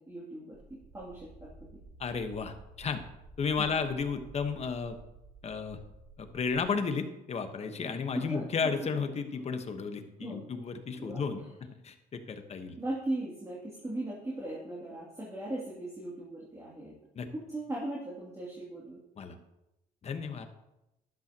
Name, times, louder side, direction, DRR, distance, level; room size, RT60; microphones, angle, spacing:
voice 1, 0.1-1.8 3.6-3.8 8.1-8.9 10.2-10.5 11.0-11.2 12.8-17.0 17.3-19.0, right 1 dB, 15° right, -5 dB, 2.7 m, -38 dB
sound 1, 0.5-6.7, right 3 dB, 35° right, 2.3 m, -52 dB
voice 2, 2.0-3.0 3.4-5.0 5.4-5.8 6.2-11.4 11.8-12.7 17.1-17.3 19.2-19.4 20.0-20.5, left 5 dB, 40° left, 7 dB, 1.3 m, -33 dB
12.0 x 11.5 x 3.0 m, 0.91 s
cardioid pair, 110°, 17 cm